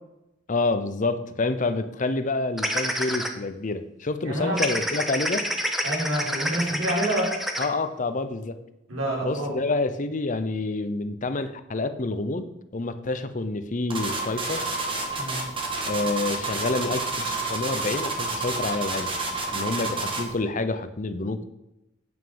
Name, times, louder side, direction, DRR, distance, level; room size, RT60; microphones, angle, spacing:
voice 1, 0.5-5.5 7.6-8.6 9.2-14.6 15.8-19.1 19.5-21.4, left 3 dB, 40° left, 11 dB, 0.7 m, -28 dB
sound 1, 2.6-3.3 4.6-7.7, equal, ahead, 1.0 m, -28 dB
voice 2, 4.2-4.6 5.8-7.3 8.9-9.5 15.2-15.4, right 1 dB, 90° right, -3 dB, 4.5 m, -27 dB
sound 2, 13.9-20.3, right 3 dB, 25° right, 2.0 m, -29 dB
9.1 x 6.5 x 7.0 m, 0.88 s
head